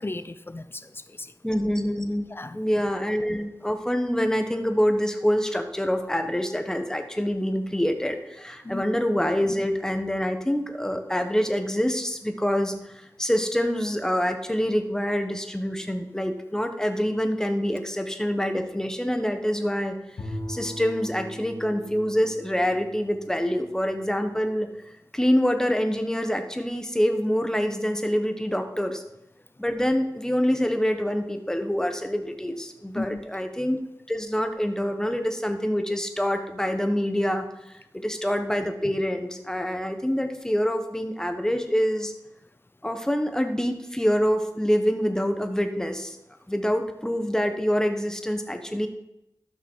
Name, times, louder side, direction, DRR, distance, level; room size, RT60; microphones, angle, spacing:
voice 1, 0.0-1.3 2.3-2.6 8.6-8.8 32.9-33.3, left 2 dB, 30° left, 12 dB, 0.6 m, -35 dB
voice 2, 1.4-2.3 2.5-20.0 20.5-24.7 25.1-29.0 29.6-33.8 34.1-42.1 42.8-46.2 46.5-48.9, equal, 10° left, 6 dB, 1.3 m, -26 dB
Bowed string instrument, 20.2-24.4, equal, 85° left, 2.4 m, -39 dB
12.5 x 6.0 x 4.7 m, 0.88 s
cardioid pair, 50°, 7 cm